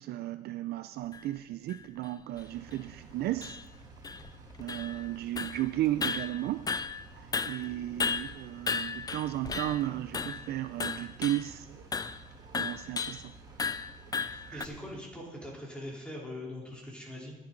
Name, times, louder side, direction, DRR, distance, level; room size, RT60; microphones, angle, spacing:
voice 1, 0.0-3.6 4.6-6.7 7.1-11.8 12.4-13.3 14.5-14.6, right 14 dB, 70° right, 11 dB, 0.4 m, -34 dB
sound 1, 1.1-1.2 1.7-1.8 2.4-2.5 2.7-2.8 3.4-3.6 4.0-5.1 5.4-5.7 6.0-7.1 7.3-9.8 10.1-10.5 10.8-11.5 11.9-12.2 12.5-13.2 13.6-14.7, left 5 dB, 20° left, 0.4 m, -34 dB
Engine, 2.3-15.0, right 3 dB, 25° right, 2.7 m, -52 dB
voice 2, 14.3-17.4, left 1 dB, 5° left, -3 dB, 3.8 m, -42 dB
14.5 x 9.7 x 3.9 m, 1.0 s
cardioid pair, 120°, 17 cm